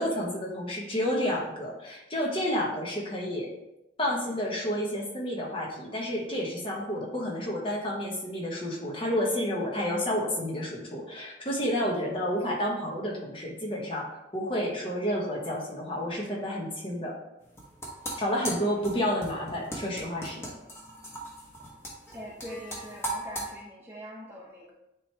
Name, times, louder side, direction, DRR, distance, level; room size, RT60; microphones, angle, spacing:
voice 1, 0.0-3.5 4.0-17.2 18.2-20.5, equal, 30° left, -2 dB, 1.3 m, -30 dB
sound 1, 17.4-23.5, right 1 dB, 15° left, 1.2 m, -38 dB
voice 2, 22.1-24.7, equal, 15° right, -3 dB, 0.8 m, -43 dB
9.4 x 3.2 x 3.4 m, 0.91 s
head